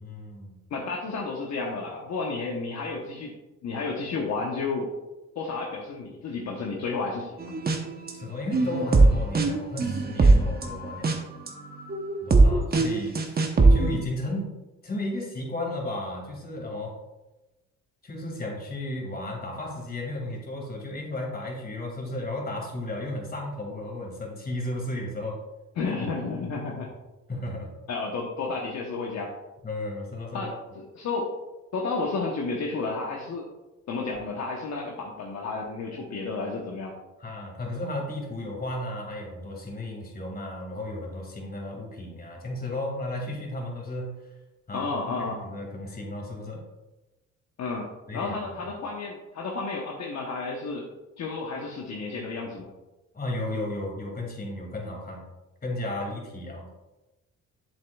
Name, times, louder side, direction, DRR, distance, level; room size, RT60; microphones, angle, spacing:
voice 1, 0.0-0.6 8.1-11.1 12.2-13.2 13.7-14.5 14.8-16.9 18.0-25.4 26.0-26.1 27.3-27.7 29.6-30.5 37.2-44.1 44.7-44.8 45.4-46.6 48.1-48.3 53.1-55.2 55.6-56.7, left 1 dB, 30° left, -1 dB, 2.5 m, -34 dB
voice 2, 0.7-3.3 3.6-4.9 5.3-7.6 25.8-26.9 27.9-29.3 30.3-31.3 31.7-33.5 33.9-36.9 44.7-45.4 47.6-50.9 51.2-52.7, left 3 dB, 65° left, -1 dB, 1.1 m, -32 dB
sound 1, 7.4-8.1 8.5-14.0, right 3 dB, 30° right, 1.0 m, -21 dB
7.7 x 7.3 x 2.4 m, 1.1 s
cardioid pair, 90°, 30 cm